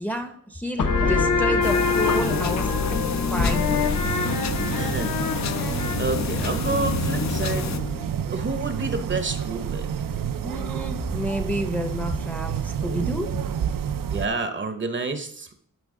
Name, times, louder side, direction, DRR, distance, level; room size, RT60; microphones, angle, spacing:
voice 1, 0.0-3.9 10.4-13.3, equal, 5° left, 6 dB, 0.6 m, -30 dB
sound 1, 0.8-8.1, left 4 dB, 70° left, 1.0 m, -25 dB
sound 2, 1.6-7.8, left 7 dB, 55° left, 0.5 m, -31 dB
sound 3, 4.0-14.3, right 8 dB, 75° right, 0.5 m, -29 dB
voice 2, 4.6-5.6 6.0-7.7 8.3-9.9 14.1-15.5, right 3 dB, 35° right, 8 dB, 0.7 m, -29 dB
11.0 x 4.6 x 3.7 m, 0.64 s
wide cardioid pair, 110°, 33 cm